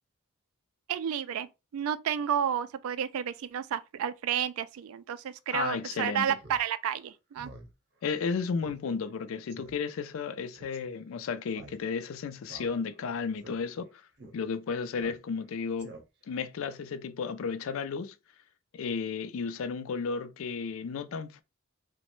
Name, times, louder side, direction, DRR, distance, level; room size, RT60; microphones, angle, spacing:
voice 1, 0.9-1.5 1.7-7.5, right 9 dB, 85° right, 0.3 m, -31 dB
voice 2, 5.5-6.4 8.0-13.9 14.3-15.9 16.3-18.1 18.7-21.4, left 5 dB, 75° left, 0.4 m, -33 dB
Speech synthesizer, 6.4-6.6 7.0-7.1 7.4-7.7 8.0-8.1 8.6-8.8 9.1-9.2 9.5-9.8 10.5-10.8 11.5-12.1 12.4-13.0 13.4-13.6 14.2-14.3 15.0-15.5 15.8-16.3, right 1 dB, 50° right, 0.7 m, -48 dB
2.9 x 2.1 x 3.0 m
head